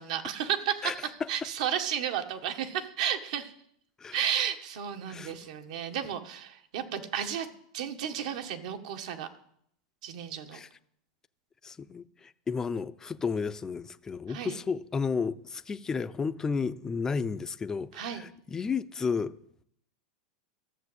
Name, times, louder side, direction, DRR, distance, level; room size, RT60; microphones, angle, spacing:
voice 1, 0.0-3.5 4.1-7.5 7.7-9.3 10.0-10.6 14.3-14.6 17.9-18.2, right 9 dB, 70° right, 1.7 m, -33 dB
voice 2, 11.6-19.3, left 5 dB, 15° left, 0.5 m, -32 dB
13.0 x 7.4 x 8.1 m
supercardioid pair, 135°, 4 cm